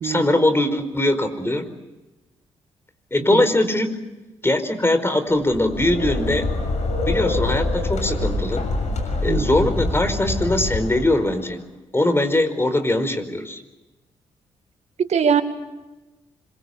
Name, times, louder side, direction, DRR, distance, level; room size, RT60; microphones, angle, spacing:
voice 1, 0.0-1.7 3.1-4.0 4.4-6.5 7.0-8.6 9.2-11.6 11.9-13.6, left 1 dB, 20° left, 10 dB, 4.8 m, -21 dB
sound 1, 5.5-11.4, left 2 dB, 60° left, 6.8 m, -25 dB
voice 2, 9.3-9.7 15.0-15.4, right 7 dB, 55° right, 8 dB, 2.1 m, -21 dB
26.0 x 23.5 x 8.4 m, 1.1 s
hypercardioid pair, 40°, 13 cm